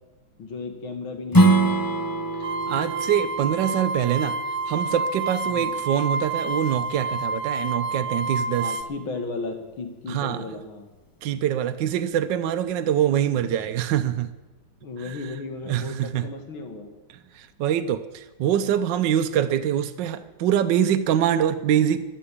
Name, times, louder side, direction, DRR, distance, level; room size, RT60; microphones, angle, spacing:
voice 1, 0.4-1.8 5.5-5.7 8.5-10.9 14.8-16.9, left 3 dB, 80° left, 5 dB, 2.8 m, -35 dB
Strum, 1.3-6.5, right 2 dB, 30° left, 0.3 m, -24 dB
sound 1, 2.4-8.8, right 3 dB, 85° right, 1.8 m, -29 dB
voice 2, 2.7-4.4 4.7-8.8 10.1-10.4 11.2-14.3 15.1-15.2 15.7-16.3 17.3-22.0, right 10 dB, 70° right, 9 dB, 1.3 m, -24 dB
13.0 x 12.0 x 8.5 m, 1.2 s
omnidirectional pair, 2.2 m